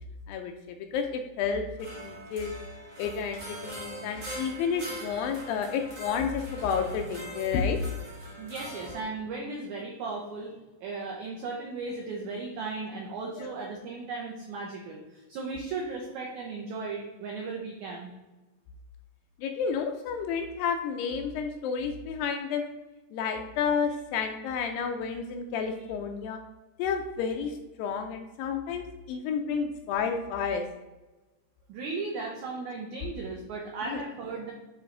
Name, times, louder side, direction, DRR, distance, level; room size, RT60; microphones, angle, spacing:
voice 1, 0.3-2.5 3.0-7.8 13.4-13.5 19.4-22.7 23.1-26.4 26.8-30.6 33.9-34.0, left 6 dB, 80° left, 4 dB, 2.1 m, -31 dB
sound 1, 1.8-9.0, right 1 dB, 60° right, 0.8 m, -42 dB
voice 2, 8.4-10.5 10.8-18.1 25.7-25.9 31.7-34.5, right 3 dB, 90° right, 0 dB, 1.6 m, -36 dB
8.9 x 3.3 x 3.7 m, 1.1 s
omnidirectional pair, 4.5 m